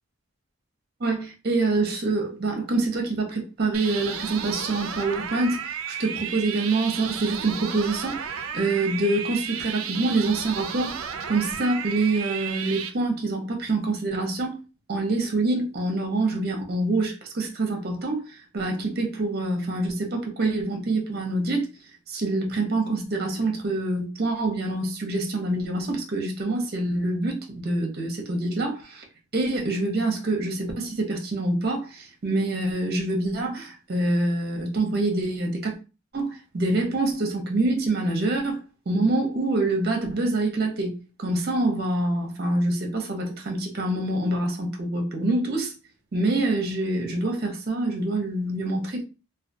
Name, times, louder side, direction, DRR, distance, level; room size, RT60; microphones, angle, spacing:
voice 1, 1.0-11.0 11.3-14.6 14.9-21.7 22.1-29.0 29.3-35.7 36.1-45.7 46.1-49.0, right 2 dB, 50° right, 0.6 m, -26 dB
sound 1, 3.7-12.9, right 7 dB, 85° right, 0.4 m, -33 dB
2.3 x 2.2 x 2.6 m
head